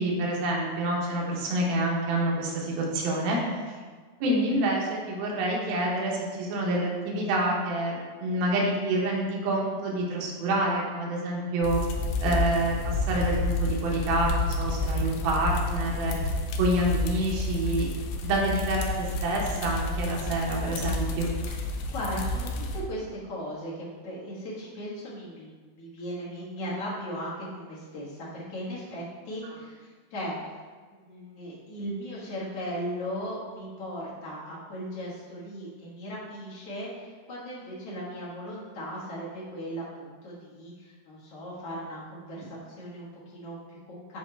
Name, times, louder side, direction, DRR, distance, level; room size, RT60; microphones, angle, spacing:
voice 1, 0.0-3.4 4.2-11.8 12.2-16.3 16.6-17.9 18.2-21.3 29.4-29.5, right 1 dB, 75° right, -3 dB, 2.8 m, -27 dB
sound 1, 11.6-22.8, left 2 dB, 85° left, 2.5 m, -30 dB
voice 2, 21.5-30.4 31.0-44.2, equal, 55° left, -8 dB, 1.8 m, -37 dB
7.9 x 4.3 x 3.3 m, 1.5 s
omnidirectional pair, 4.5 m